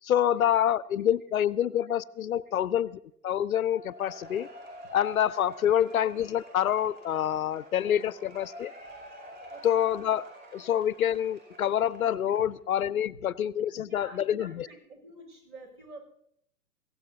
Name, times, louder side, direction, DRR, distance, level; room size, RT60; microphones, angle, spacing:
voice 1, 0.0-4.5 4.9-8.7 9.6-10.3 10.5-14.7, left 10 dB, 60° left, 20 dB, 0.7 m, -27 dB
Cheering / Applause / Crowd, 3.7-12.6, equal, 20° right, 7.9 m, -48 dB
voice 2, 13.7-16.0, right 2 dB, 75° right, 3 dB, 6.5 m, -48 dB
23.0 x 16.5 x 2.8 m, 0.72 s
figure-of-eight pair, 110°, 47 cm